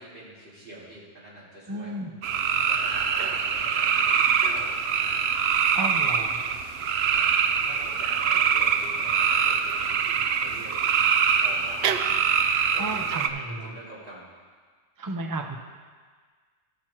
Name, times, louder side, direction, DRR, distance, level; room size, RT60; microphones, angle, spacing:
voice 1, 0.0-1.9 2.7-4.7 7.1-10.8 11.4-12.2 12.7-14.3, right 1 dB, 50° right, -8 dB, 3.3 m, -44 dB
voice 2, 1.7-2.1 5.7-6.4 12.8-13.8 15.0-15.6, right 2 dB, 30° right, 4 dB, 0.4 m, -33 dB
sound 1, 2.2-13.3, right 7 dB, 70° right, 0.8 m, -24 dB
14.0 x 6.1 x 4.5 m, 1.5 s
omnidirectional pair, 1.2 m